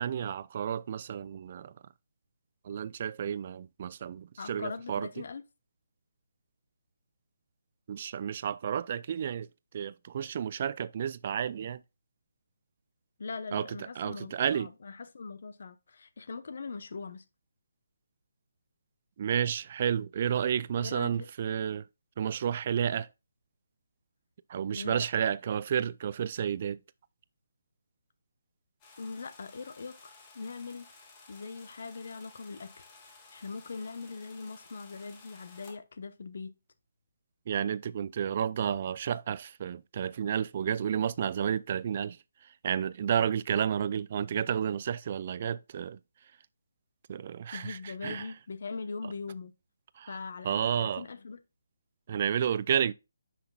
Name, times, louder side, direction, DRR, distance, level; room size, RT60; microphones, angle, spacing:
voice 1, 0.0-1.7 2.7-5.1 7.9-9.5 9.7-11.8 13.5-13.7 14.0-14.7 19.2-21.8 22.2-23.1 24.5-26.8 37.5-42.2 42.6-46.0 47.1-47.8 48.0-48.2 50.0-50.1 50.4-51.0 52.1-52.9, right 8 dB, 40° right, 0.4 m, -31 dB
voice 2, 4.4-5.4 13.2-17.2 20.8-21.3 24.7-25.2 29.0-30.9 31.3-36.5 47.5-49.5 50.1-51.4, left 4 dB, 55° left, 0.9 m, -41 dB
sound 1, 28.8-35.7, left 3 dB, 25° left, 2.1 m, -55 dB
10.0 x 5.9 x 2.3 m
figure-of-eight pair, 150°, 0 cm